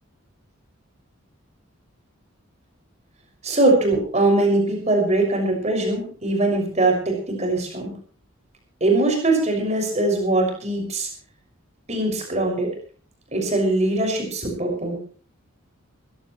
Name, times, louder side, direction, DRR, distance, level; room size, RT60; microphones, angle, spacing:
voice 1, 3.4-7.9 8.8-11.1 11.9-12.7 13.3-15.0, right 2 dB, 30° right, 2 dB, 6.1 m, -21 dB
21.5 x 16.5 x 3.1 m, 0.42 s
head